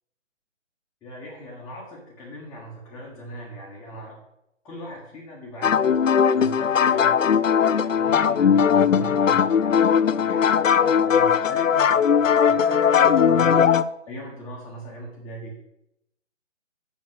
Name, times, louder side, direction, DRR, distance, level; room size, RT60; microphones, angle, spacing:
voice 1, 1.0-4.2 4.6-6.0 6.3-9.7 10.1-13.6 14.0-15.5, right 1 dB, 5° left, -7 dB, 1.3 m, -39 dB
sound 1, 5.6-13.8, left 7 dB, 90° left, 0.6 m, -19 dB
7.4 x 6.5 x 7.8 m, 0.82 s
figure-of-eight pair, 155°, 37 cm